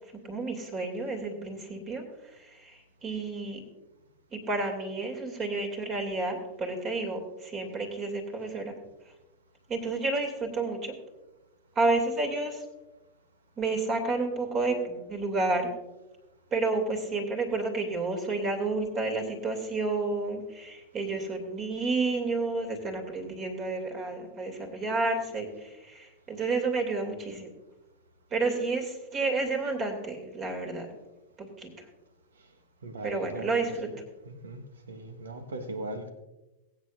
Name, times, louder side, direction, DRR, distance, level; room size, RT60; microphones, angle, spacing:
voice 1, 0.2-2.0 2.4-3.6 4.3-8.7 9.7-10.9 11.7-12.6 13.6-15.7 16.5-27.5 28.3-30.9 31.4-31.8 33.0-33.9, right 3 dB, 30° right, 4 dB, 2.8 m, -30 dB
voice 2, 32.8-33.5 34.2-34.6 34.9-36.1, right 2 dB, 65° right, 7 dB, 1.4 m, -38 dB
22.5 x 8.5 x 2.6 m, 1.0 s
figure-of-eight pair, 90°, 0 cm